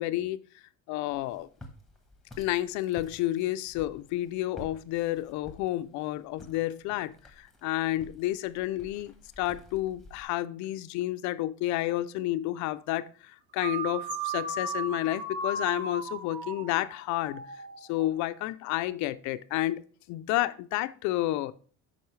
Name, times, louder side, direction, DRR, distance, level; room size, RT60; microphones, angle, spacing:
voice 1, 0.0-1.5 2.4-17.4 17.8-21.5, left 15 dB, 70° left, 13 dB, 0.5 m, -31 dB
Walk footsteps, 1.1-10.3, left 1 dB, ahead, 1.0 m, -52 dB
sound 1, 13.6-18.1, right 3 dB, 70° right, 2.0 m, -36 dB
8.1 x 5.4 x 3.2 m, 0.43 s
cardioid pair, 170°, 30 cm